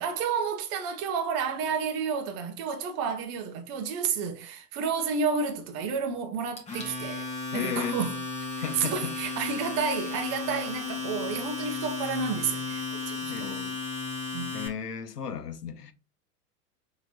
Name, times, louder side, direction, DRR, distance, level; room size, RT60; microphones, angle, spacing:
voice 1, 0.0-8.1 8.6-13.6 14.3-14.5, right 6 dB, 30° right, 0.9 m, -31 dB
Domestic sounds home sounds, 6.6-14.7, left 3 dB, 15° left, 1.1 m, -34 dB
voice 2, 7.5-8.0 8.6-9.1 13.3-13.8 14.5-15.9, left 8 dB, 80° left, 0.7 m, -34 dB
5.7 x 2.9 x 2.8 m
figure-of-eight pair, 90°, 47 cm